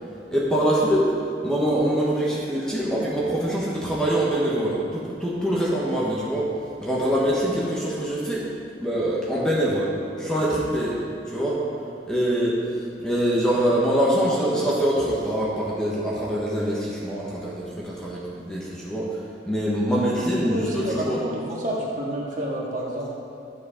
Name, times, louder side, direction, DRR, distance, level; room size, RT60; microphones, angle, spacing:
voice 1, 0.3-1.1 1.4-6.5 6.8-8.5 8.8-9.9 10.2-11.0 11.3-11.6 12.1-12.6 13.0-19.2 19.5-21.2, right 1 dB, 5° left, -6 dB, 1.3 m, -24 dB
voice 2, 20.4-23.1, right 1 dB, 40° right, -4 dB, 1.9 m, -29 dB
12.0 x 7.3 x 5.1 m, 2.5 s
head